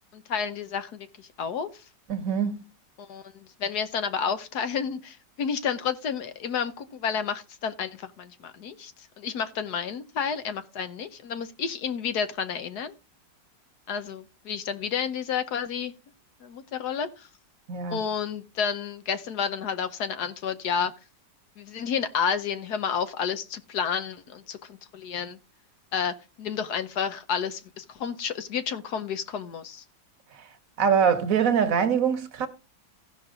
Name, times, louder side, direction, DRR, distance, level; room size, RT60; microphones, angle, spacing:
voice 1, 0.1-1.8 3.0-8.9 9.2-12.9 13.9-15.9 16.4-17.3 17.9-20.9 21.6-25.4 25.9-29.8, left 7 dB, 65° left, 1.3 m, -31 dB
voice 2, 2.1-2.6 17.7-18.0 30.3-30.5 30.8-32.5, right 7 dB, 55° right, 1.3 m, -24 dB
15.5 x 6.0 x 3.7 m
omnidirectional pair, 1.9 m